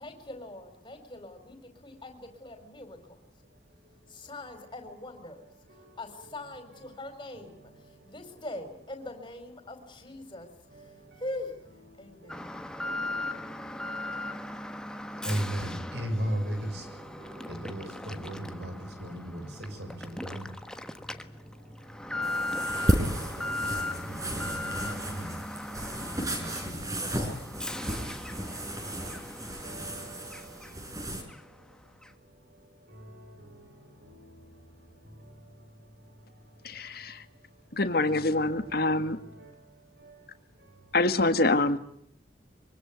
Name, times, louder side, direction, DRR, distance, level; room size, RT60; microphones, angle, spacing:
voice 1, 0.0-3.2 4.1-5.4 5.7-11.6 12.0-12.5, left 2 dB, 25° left, 6 dB, 4.6 m, -42 dB
Alarm, 12.3-31.0 31.3-31.4 32.0-32.1, left 1 dB, 5° left, 1.3 m, -38 dB
voice 2, 15.2-16.9 17.5-18.7 19.0-20.4 22.8-23.3 23.7-25.3 26.3-26.8 27.2-27.3 29.6-30.1 38.0-38.2 38.5-38.6, right 1 dB, 65° right, 8 dB, 6.8 m, -36 dB
sound 1, 22.2-31.2, right 1 dB, 20° right, 5.2 m, -33 dB
voice 3, 36.6-37.2 37.8-39.2 40.9-41.8, left 2 dB, 55° left, 10 dB, 1.8 m, -25 dB
24.5 x 24.0 x 9.4 m, 0.67 s
head